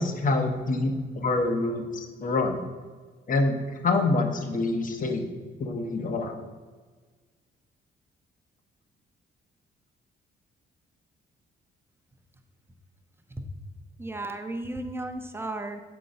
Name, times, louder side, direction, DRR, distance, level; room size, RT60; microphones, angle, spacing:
voice 1, 0.0-2.6 3.3-5.3 5.6-6.4, left 2 dB, 40° left, 5 dB, 0.9 m, -26 dB
voice 2, 14.0-15.8, right 2 dB, 10° right, 5 dB, 0.7 m, -34 dB
7.9 x 3.7 x 5.3 m, 1.4 s
cardioid pair, 90°, 20 cm